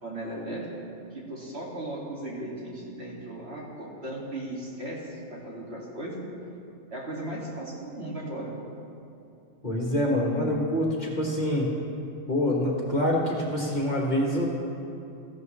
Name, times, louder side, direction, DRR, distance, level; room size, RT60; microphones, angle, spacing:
voice 1, 0.0-6.2 6.9-8.6, right 1 dB, 55° right, -5 dB, 2.6 m, -37 dB
voice 2, 9.6-11.7 12.3-14.5, left 1 dB, 35° left, -2 dB, 1.7 m, -26 dB
17.5 x 14.0 x 3.2 m, 2.7 s
omnidirectional pair, 1.3 m